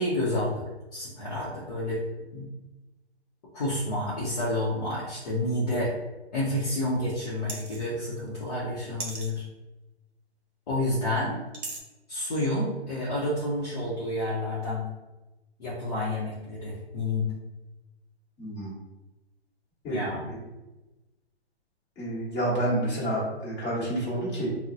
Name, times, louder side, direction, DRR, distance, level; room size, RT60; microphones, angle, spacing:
voice 1, 0.0-2.0 2.3-2.5 3.5-5.9 6.3-9.4 10.7-11.4 12.1-14.9 15.6-17.3 19.9-20.2, left 1 dB, 35° left, -7 dB, 0.7 m, -29 dB
sound 1, 7.5-7.9 9.0-9.3 11.5-11.8, right 3 dB, 50° right, 0.7 m, -36 dB
voice 2, 18.4-18.7 19.8-20.0 20.3-20.4 22.0-24.5, right 1 dB, 20° left, -9 dB, 1.2 m, -29 dB
4.0 x 2.0 x 2.6 m, 1.1 s
hypercardioid pair, 150°, 34 cm